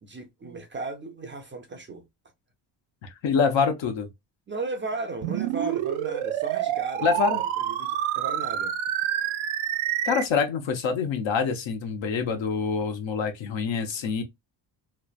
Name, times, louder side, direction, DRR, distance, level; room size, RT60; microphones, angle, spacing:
voice 1, 0.0-2.1 4.5-7.1 7.3-8.7 13.7-14.2, right 3 dB, 25° right, 0.5 m, -36 dB
voice 2, 3.0-4.1 7.0-7.4 10.0-14.2, left 5 dB, 70° left, 0.9 m, -26 dB
sound 1, 5.2-10.2, right 12 dB, 80° right, 0.6 m, -28 dB
3.2 x 2.1 x 2.3 m
cardioid pair, 120°, 48 cm